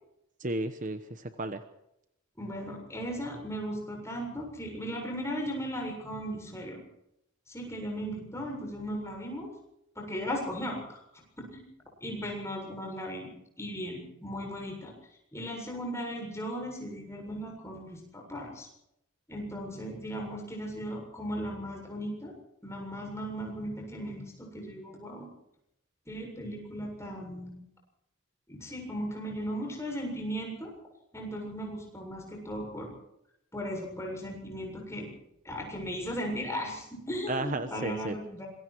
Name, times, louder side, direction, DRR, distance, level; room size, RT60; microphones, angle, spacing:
voice 1, 0.4-1.6 37.3-38.2, right 2 dB, 40° right, 9 dB, 1.1 m, -33 dB
voice 2, 2.4-6.8 7.5-9.5 10.0-11.0 11.4-11.7 12.0-13.3 13.6-14.9 15.3-18.7 19.3-22.3 22.6-25.3 26.1-27.5 28.5-30.7 31.1-32.9 33.5-35.1 35.4-38.5, equal, 15° left, 0 dB, 7.5 m, -37 dB
26.0 x 22.0 x 4.7 m, 0.81 s
head